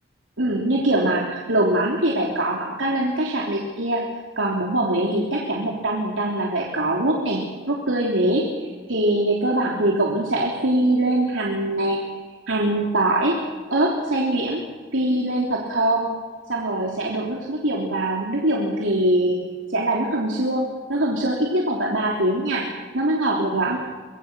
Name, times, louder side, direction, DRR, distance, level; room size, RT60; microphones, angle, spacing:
voice 1, 0.4-4.1 4.4-8.4 8.9-12.0 12.5-13.3 13.7-14.6 14.9-16.1 16.5-19.4 19.7-22.6 22.9-23.8, right 1 dB, 85° right, -2 dB, 3.3 m, -22 dB
24.5 x 23.0 x 6.2 m, 1.4 s
head